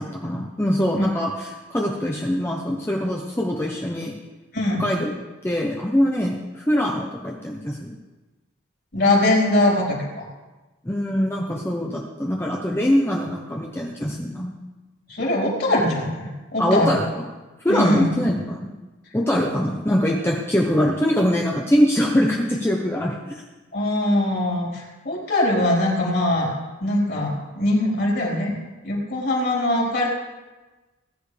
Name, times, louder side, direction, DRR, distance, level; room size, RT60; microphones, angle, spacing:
voice 1, 0.0-4.1 4.8-5.1 5.4-7.9 10.8-14.5 16.6-17.0 17.6-18.7 19.1-23.1, equal, 10° left, -1 dB, 0.9 m, -23 dB
voice 2, 4.5-4.8 8.9-10.3 15.1-17.0 17.7-18.1 23.7-26.5 26.8-28.6 28.8-30.1, left 1 dB, 50° left, -4 dB, 4.5 m, -22 dB
20.0 x 10.5 x 3.5 m, 1.2 s
head